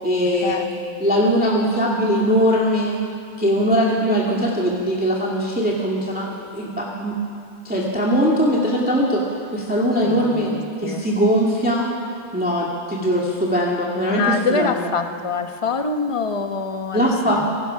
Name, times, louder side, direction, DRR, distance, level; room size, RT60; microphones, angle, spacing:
voice 1, 0.0-0.7 1.0-3.0 3.4-7.2 7.6-9.2 9.5-10.5 10.8-11.9 12.3-14.9 16.9-17.4, equal, 5° right, -3 dB, 2.0 m, -20 dB
voice 2, 10.0-11.0 14.1-17.5, left 4 dB, 30° left, 6 dB, 0.6 m, -25 dB
25.5 x 18.0 x 5.7 m, 2.2 s
omnidirectional pair, 2.1 m